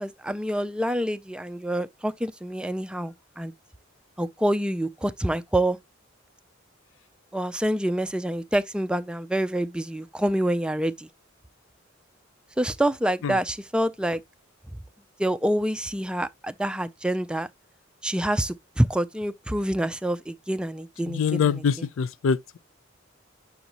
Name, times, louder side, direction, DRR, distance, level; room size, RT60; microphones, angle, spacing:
voice 1, 0.0-3.5 4.2-5.8 7.3-11.1 12.6-14.2 15.2-17.5 18.0-21.6, right 1 dB, 5° right, 0.3 m, -27 dB
voice 2, 21.0-22.6, left 6 dB, 80° left, 0.4 m, -25 dB
7.0 x 5.2 x 2.8 m
head